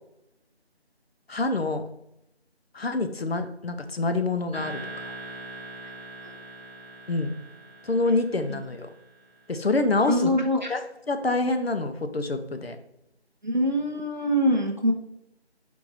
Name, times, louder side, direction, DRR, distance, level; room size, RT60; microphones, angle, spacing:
voice 1, 1.3-1.9 2.7-5.1 7.1-7.3 7.8-8.9 9.5-10.3 10.7-10.8 11.1-12.8, left 3 dB, 65° left, 8 dB, 0.5 m, -26 dB
sound 1, 4.5-9.4, right 2 dB, 30° left, 1.7 m, -42 dB
voice 2, 10.1-10.7 13.4-14.9, equal, 45° right, 2 dB, 0.6 m, -24 dB
4.6 x 2.6 x 4.0 m, 0.83 s
figure-of-eight pair, 170°, 33 cm